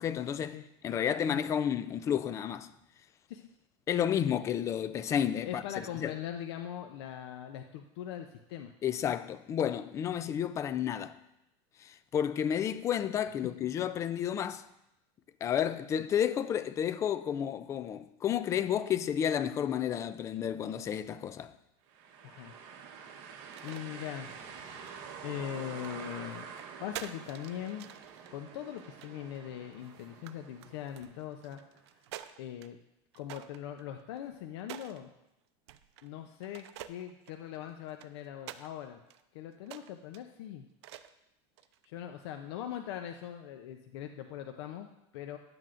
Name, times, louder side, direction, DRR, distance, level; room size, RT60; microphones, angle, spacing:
voice 1, 0.0-0.6 0.8-2.7 3.9-6.1 8.8-11.1 11.8-14.6 15.4-21.5, left 9 dB, 20° left, 0.3 m, -31 dB
voice 2, 5.5-8.7 10.3-10.4 22.2-22.6 23.2-23.3 23.6-24.8 25.2-26.5 26.8-27.9 28.3-31.6 32.4-32.8 33.1-35.1 36.0-39.0 39.3-40.7 41.8-44.9 45.1-45.4, left 10 dB, 75° left, 0.6 m, -41 dB
sound 1, 21.9-31.7, right 6 dB, 55° right, 1.1 m, -47 dB
sound 2, 23.4-23.8 24.3-25.3 25.8-29.4 29.8-30.3 30.6-32.7 33.1-35.0 35.7-36.1 36.4-38.7 39.1-39.2 39.6-40.2 40.8-41.2 41.6-41.9, right 12 dB, 90° right, 0.5 m, -48 dB
10.5 x 7.6 x 2.5 m
supercardioid pair, 155°, 14 cm